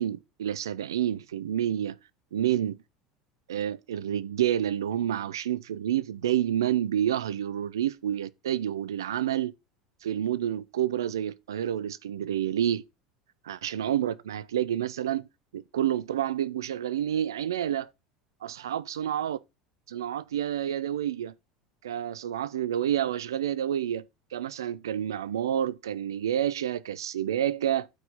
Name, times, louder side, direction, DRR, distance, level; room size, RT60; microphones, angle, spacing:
voice 1, 0.0-2.0 2.3-2.8 3.5-9.5 10.0-12.8 13.4-15.3 15.5-17.9 18.4-19.4 19.9-21.3 21.8-24.0 24.3-27.9, right 10 dB, 75° right, 0.5 m, -29 dB
9.0 x 4.8 x 5.3 m
figure-of-eight pair, 75°, 2 cm